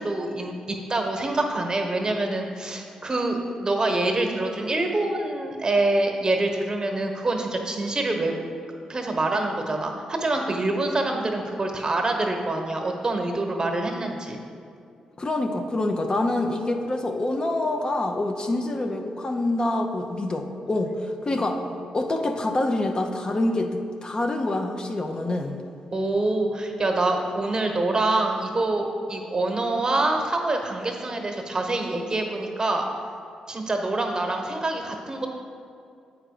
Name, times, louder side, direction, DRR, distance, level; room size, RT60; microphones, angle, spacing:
voice 1, 0.0-8.3 8.9-14.4 21.3-21.6 25.9-32.8 33.5-35.3, right 2 dB, 30° right, 3 dB, 1.1 m, -26 dB
voice 2, 15.2-21.6 21.9-25.6, left 2 dB, 35° left, 4 dB, 0.7 m, -26 dB
7.6 x 5.0 x 4.9 m, 2.4 s
supercardioid pair, 50°, 2 cm